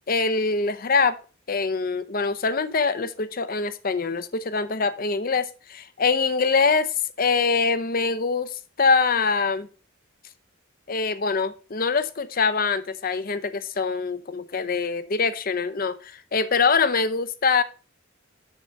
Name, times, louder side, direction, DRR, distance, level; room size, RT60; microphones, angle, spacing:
voice 1, 0.1-1.1 1.5-6.9 7.2-9.7 10.9-17.6, left 4 dB, 45° left, 13 dB, 0.7 m, -24 dB
7.3 x 6.3 x 5.3 m, 0.36 s
head